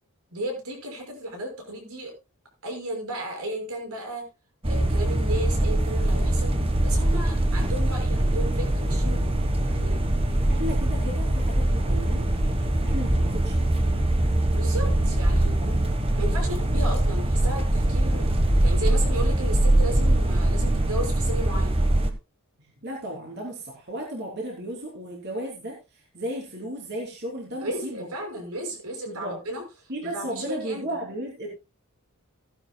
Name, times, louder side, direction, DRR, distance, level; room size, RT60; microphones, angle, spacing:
voice 1, 0.3-2.1 2.6-4.3 4.6-6.6 6.8-9.3 9.7-10.0 14.5-15.6 16.2-18.3 18.6-21.7 27.6-30.8, right 1 dB, 85° right, 2 dB, 6.0 m, -34 dB
sound 1, 4.6-22.1, right 1 dB, 25° right, 1.3 m, -22 dB
voice 2, 10.5-12.2 12.8-13.8 15.6-15.8 22.8-28.1 29.1-29.3 29.9-31.5, right 1 dB, 50° right, -1 dB, 3.2 m, -34 dB
16.0 x 11.5 x 2.3 m, 0.27 s
head